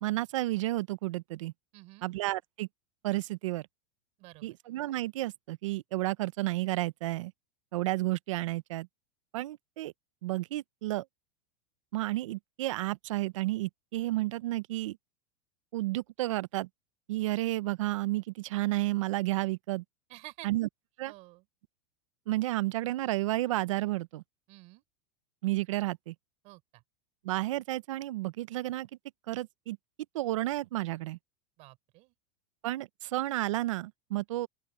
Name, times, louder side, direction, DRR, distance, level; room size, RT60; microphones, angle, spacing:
voice 1, 0.0-1.5 2.0-2.7 3.0-3.7 4.4-7.3 7.7-8.9 9.3-9.9 10.2-11.0 11.9-15.0 15.7-16.7 17.1-19.8 20.4-20.7 21.0-21.1 22.3-24.2 25.4-26.1 27.2-28.9 29.3-29.8 30.1-31.2 32.6-34.5, right 17 dB, 80° right, 0.7 m, -31 dB
voice 2, 1.7-2.1 4.2-4.6 20.1-20.5 21.1-21.5 24.5-24.8 26.4-26.8 31.6-32.1, right 22 dB, 40° right, 5.5 m, -50 dB
open air
supercardioid pair, 160°, 16 cm